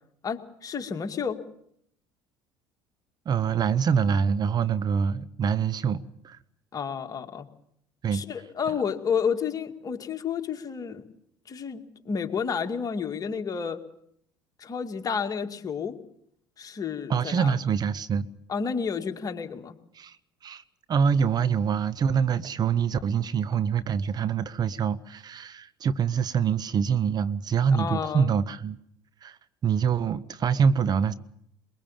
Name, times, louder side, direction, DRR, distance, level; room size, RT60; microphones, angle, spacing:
voice 1, 0.2-1.4 6.7-7.5 8.1-11.0 11.5-13.8 14.6-16.0 16.6-17.6 18.5-19.8 27.7-28.3, left 6 dB, 35° left, 2.2 m, -30 dB
voice 2, 3.2-6.4 8.0-8.2 17.1-18.3 19.9-20.2 20.4-20.6 20.9-28.8 29.2-31.1, right 7 dB, 40° right, 1.1 m, -25 dB
22.5 x 22.0 x 7.3 m
hypercardioid pair, 65°, 10 cm